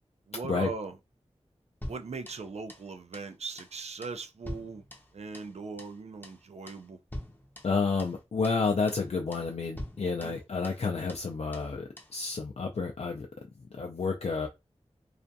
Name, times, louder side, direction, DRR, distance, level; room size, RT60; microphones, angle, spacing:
voice 1, 0.3-1.0 1.9-4.8 5.1-7.0 10.0-10.4, right 4 dB, 70° right, 0.4 m, -39 dB
sound 1, 1.8-2.9 3.1-3.3 3.6-3.8 4.0-5.5 5.8-6.0 6.2-6.4 6.7-6.9 7.1-8.2 8.4-8.6 8.9-9.1 9.3-9.5 9.8-10.8 11.1-11.3 11.5-11.7 12.0-12.2, left 1 dB, 15° left, 0.6 m, -44 dB
voice 2, 7.6-13.3 13.7-14.5, left 4 dB, 65° left, 0.4 m, -30 dB
2.4 x 2.2 x 2.6 m
wide cardioid pair, 55°, 11 cm